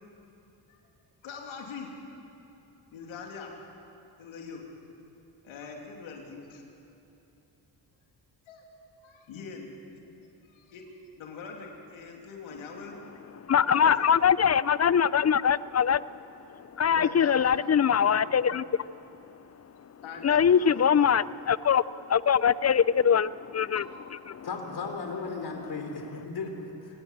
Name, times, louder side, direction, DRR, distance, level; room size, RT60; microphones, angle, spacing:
voice 1, 1.2-1.9 2.9-3.5 4.2-4.6 5.4-6.6 8.5-8.6 9.0-9.7 10.4-10.8 11.1-13.0 13.6-14.0 17.0-18.3 20.0-21.1 22.5-22.6, left 5 dB, 90° left, 0 dB, 3.2 m, -43 dB
voice 2, 13.5-16.0 16.8-18.6 20.2-21.8 22.1-23.8 24.3-24.5, left 7 dB, 35° left, 19 dB, 0.6 m, -22 dB
voice 3, 24.4-27.0, left 4 dB, 55° left, 4 dB, 3.9 m, -36 dB
26.0 x 18.5 x 7.5 m, 3.0 s
supercardioid pair, 60°, 46 cm